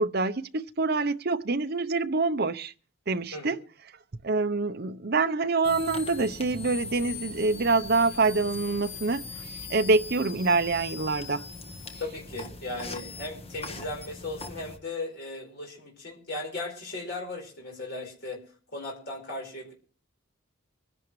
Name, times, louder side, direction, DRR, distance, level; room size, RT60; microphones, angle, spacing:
voice 1, 0.0-2.7 3.1-3.6 4.2-11.4, right 3 dB, 50° right, 0.7 m, -26 dB
sound 1, 5.6-14.8, left 4 dB, 30° left, 1.3 m, -40 dB
voice 2, 12.0-18.4 18.7-19.7, left 2 dB, 50° left, 4.8 m, -37 dB
24.5 x 11.0 x 3.2 m
head